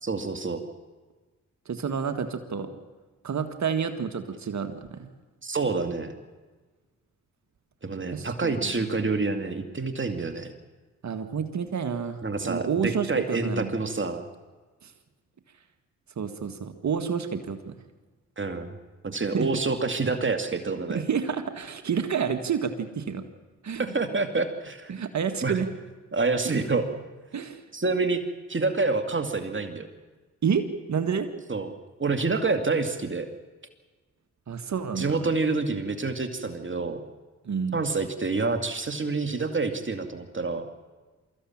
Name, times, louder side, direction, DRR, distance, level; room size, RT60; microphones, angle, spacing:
voice 1, 0.0-0.6 5.4-6.1 7.8-10.5 12.2-14.3 18.4-18.7 19.0-21.0 23.8-24.9 25.4-25.6 26.1-26.9 27.7-28.2 28.5-29.9 31.5-31.7 32.0-33.3 35.0-37.0 37.7-40.6, right 3 dB, 40° right, 6 dB, 2.5 m, -27 dB
voice 2, 1.7-2.7 3.2-5.1 8.1-8.9 11.0-13.7 14.8-14.9 16.2-17.7 19.3-19.5 20.9-23.2 23.6-23.9 24.9-25.7 26.5-26.6 27.3-27.6 30.4-31.3 34.5-35.3 37.4-37.8, right 6 dB, 65° right, 8 dB, 1.9 m, -29 dB
23.5 x 15.0 x 8.8 m, 1.3 s
supercardioid pair, 45°, 31 cm